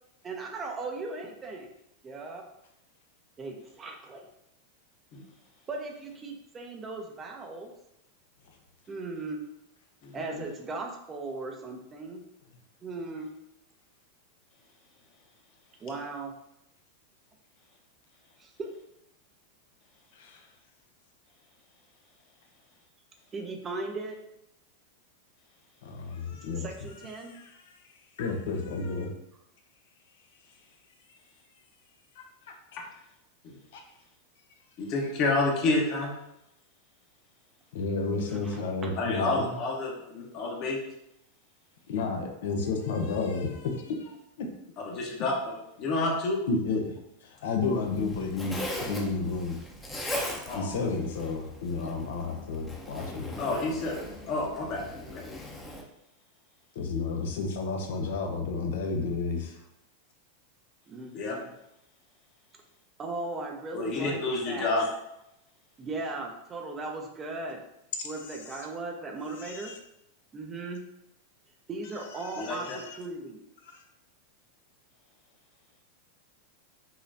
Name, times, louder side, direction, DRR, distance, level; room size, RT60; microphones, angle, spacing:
voice 1, 0.2-1.7 2.0-2.5 3.4-4.3 5.7-7.7 8.9-9.4 10.1-12.2 12.8-13.3 15.8-16.3 18.4-18.7 23.3-24.2 26.6-27.3 38.4-38.9 60.9-61.5 63.0-64.7 65.8-67.6 68.0-69.7 70.3-70.8 71.7-73.4, right 3 dB, 25° right, 2 dB, 0.8 m, -37 dB
voice 2, 10.0-10.4 32.8-32.9 33.4-33.5 34.8-36.1 39.0-40.9 44.8-46.4 50.5-50.7 53.4-54.0 54.3-55.2 61.1-61.4 63.7-64.9 72.4-72.8, left 2 dB, 40° left, -1 dB, 1.1 m, -29 dB
voice 3, 20.1-20.5 25.8-26.7 27.0-29.1 31.1-31.2 32.2-32.8 33.7-33.8 37.7-39.5 41.9-44.5 46.5-46.9 47.2-49.6 50.5-53.3 56.7-59.6 68.3-68.6 69.4-69.8 72.2-73.0 73.7-73.8, left 4 dB, 60° left, 4 dB, 0.7 m, -32 dB
Zipper (clothing), 47.6-55.8, left 1 dB, 10° left, 0.9 m, -39 dB
5.7 x 3.1 x 2.7 m, 0.82 s
figure-of-eight pair, 90°, 0 cm